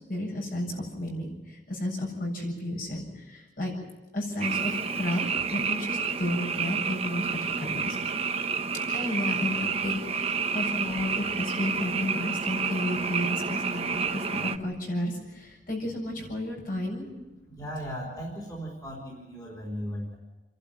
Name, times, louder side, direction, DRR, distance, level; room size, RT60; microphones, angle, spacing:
voice 1, 0.1-3.7 4.1-5.2 5.5-8.0 8.9-17.1, left 1 dB, 50° left, 0 dB, 7.4 m, -32 dB
Frog, 4.4-14.6, right 5 dB, 35° right, 1.0 m, -30 dB
voice 2, 17.5-20.2, equal, 20° left, -3 dB, 3.8 m, -37 dB
29.0 x 11.5 x 9.4 m, 1.1 s
head